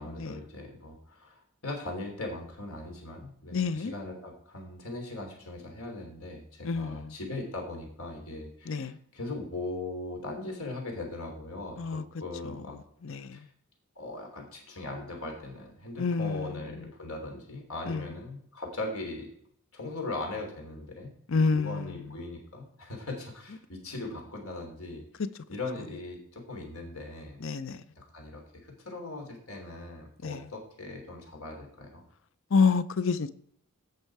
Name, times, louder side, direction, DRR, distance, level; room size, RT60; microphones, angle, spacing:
voice 1, 0.0-12.8 13.3-13.4 13.9-19.3 19.7-25.1 25.5-27.4 27.9-32.0, left 2 dB, 80° left, 3.2 m, -39 dB
voice 2, 3.5-3.9 6.6-7.1 8.7-9.0 11.8-12.0 13.0-13.4 16.0-16.5 17.9-18.0 21.3-21.9 27.4-27.8 30.2-30.4 32.5-33.3, left 5 dB, 65° left, 0.6 m, -28 dB
16.5 x 5.6 x 4.7 m
head